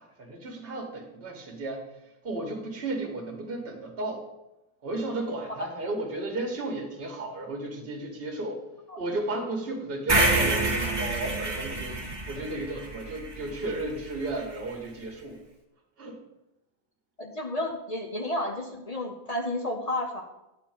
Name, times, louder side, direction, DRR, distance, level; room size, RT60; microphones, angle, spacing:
voice 1, 0.0-1.8 2.2-4.2 4.8-8.6 9.0-12.0 12.3-15.4 16.0-16.2, right 2 dB, 35° right, 3 dB, 1.7 m, -33 dB
sound 1, 10.1-14.2, right 2 dB, 15° right, 1.4 m, -28 dB
voice 2, 17.2-20.2, left 1 dB, 50° left, 3 dB, 0.4 m, -31 dB
9.8 x 4.4 x 7.3 m, 0.93 s
omnidirectional pair, 1.9 m